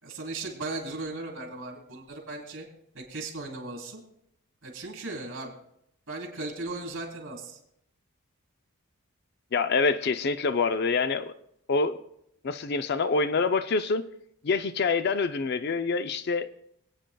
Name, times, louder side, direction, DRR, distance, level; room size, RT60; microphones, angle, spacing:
voice 1, 0.0-2.7 2.9-4.0 4.6-5.5 6.1-7.6, right 2 dB, 55° right, 3.5 m, -37 dB
voice 2, 9.5-11.3 11.7-12.0 12.4-14.1 14.4-16.5, left 4 dB, 45° left, 0.4 m, -26 dB
26.0 x 9.0 x 2.3 m
head